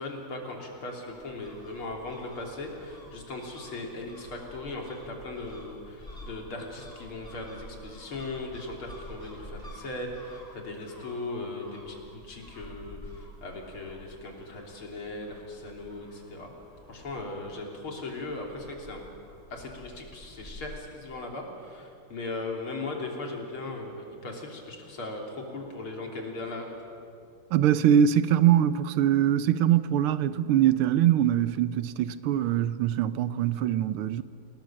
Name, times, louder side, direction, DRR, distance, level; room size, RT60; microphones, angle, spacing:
voice 1, 0.0-16.5 16.9-19.0 19.5-26.7, left 2 dB, 75° left, 4.1 m, -38 dB
sound 1, 1.1-20.7, left 1 dB, 10° left, 6.7 m, -49 dB
voice 2, 27.5-34.2, right 10 dB, 85° right, 1.7 m, -23 dB
28.5 x 18.5 x 7.6 m
omnidirectional pair, 2.3 m